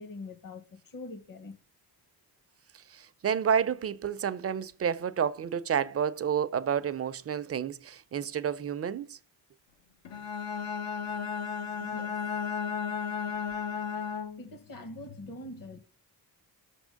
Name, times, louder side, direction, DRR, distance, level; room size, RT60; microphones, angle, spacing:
voice 1, 0.0-1.5 11.8-12.2 14.4-15.8, left 2 dB, 50° left, 1.1 m, -43 dB
voice 2, 2.9-9.2, right 8 dB, 35° right, 0.4 m, -30 dB
Bowed string instrument, 10.0-14.5, left 6 dB, 85° left, 1.1 m, -34 dB
6.0 x 3.6 x 5.1 m
cardioid pair, 80°, 42 cm